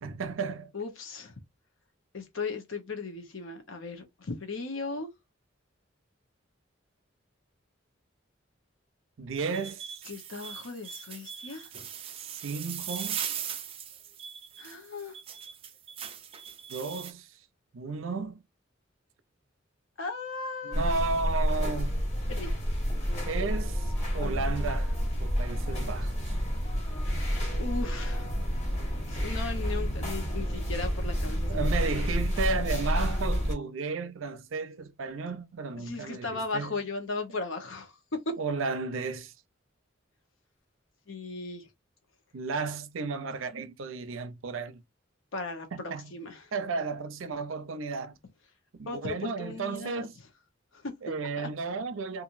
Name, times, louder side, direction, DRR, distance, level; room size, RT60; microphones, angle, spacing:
voice 1, 0.0-0.7 9.2-10.0 12.2-13.2 16.7-17.3 17.7-18.4 20.6-22.0 23.3-26.4 31.5-36.8 38.4-39.3 42.3-44.8 45.9-46.1 46.5-48.2 48.8-50.1 51.0-52.2, right 4 dB, 80° right, 0.5 m, -33 dB
voice 2, 0.7-1.3 2.1-5.1 10.1-11.7 14.6-15.1 20.0-20.9 22.3-22.5 27.5-28.3 29.1-31.7 32.0-32.1 35.8-37.9 38.3-38.4 41.1-41.6 45.3-46.5 48.9-50.1 50.7-50.9 51.4-51.5, left 3 dB, 80° left, 0.9 m, -37 dB
sound 1, 9.3-17.1, right 8 dB, 30° right, 0.4 m, -39 dB
sound 2, 20.7-33.5, equal, 35° left, 1.6 m, -29 dB
2.9 x 2.5 x 2.5 m
head